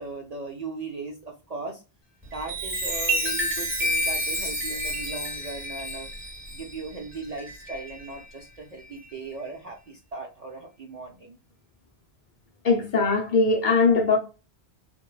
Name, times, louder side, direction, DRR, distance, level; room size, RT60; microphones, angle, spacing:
voice 1, 0.0-1.8 2.3-6.1 6.5-11.4, right 3 dB, 55° right, 0.4 m, -38 dB
Chime, 2.2-8.2 8.8-9.1, equal, 10° right, 1.0 m, -30 dB
voice 2, 12.6-14.2, left 4 dB, 60° left, 0.6 m, -20 dB
2.9 x 2.1 x 2.3 m
omnidirectional pair, 1.1 m